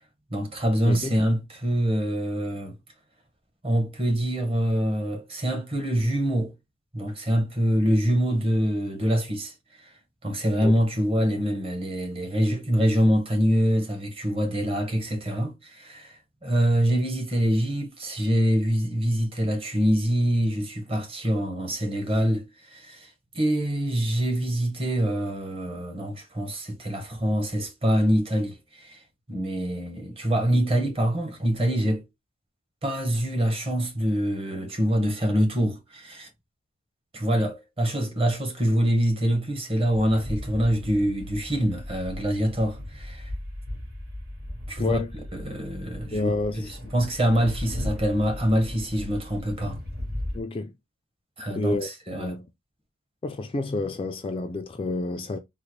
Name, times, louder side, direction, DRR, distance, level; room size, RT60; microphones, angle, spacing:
voice 1, 0.3-2.7 3.6-6.5 6.9-9.5 10.2-29.0 29.3-32.0 32.8-36.3 37.1-43.3 44.7-45.0 45.3-49.8 51.4-52.4, equal, 25° right, 1.0 m, -25 dB
sound 1, 39.9-50.4, left 1 dB, 45° right, 1.8 m, -37 dB
voice 2, 44.8-45.1 46.1-46.9 50.3-50.7 51.5-52.5 53.2-55.4, left 3 dB, 25° left, 0.3 m, -29 dB
3.8 x 2.1 x 3.0 m
head